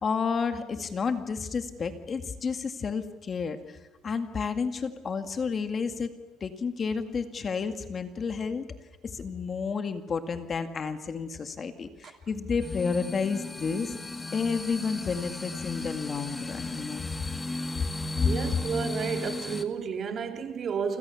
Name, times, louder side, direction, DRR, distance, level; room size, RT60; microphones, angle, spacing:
voice 1, 0.0-3.8 4.0-6.1 6.4-8.6 9.0-14.0 14.3-17.1 17.8-17.9 18.2-18.3, left 5 dB, 30° left, 2.0 m, -31 dB
sound 1, 12.6-19.6, left 2 dB, 15° left, 1.8 m, -35 dB
voice 2, 18.2-21.0, right 6 dB, 40° right, 2.9 m, -31 dB
30.0 x 26.0 x 7.1 m
cardioid pair, 135°, 0 cm